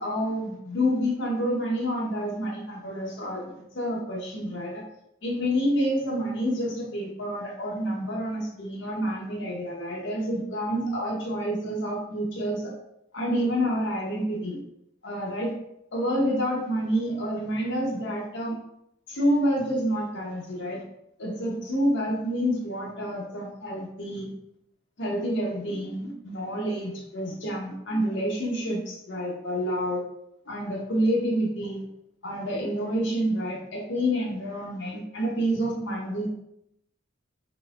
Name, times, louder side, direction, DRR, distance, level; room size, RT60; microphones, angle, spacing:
voice 1, 0.0-4.8 5.2-12.7 13.1-14.6 15.0-15.5 15.9-18.6 19.1-20.8 21.2-24.3 25.0-30.0 30.5-31.8 32.2-36.3, equal, 60° left, -1 dB, 0.9 m, -28 dB
4.0 x 3.5 x 2.5 m, 0.78 s
head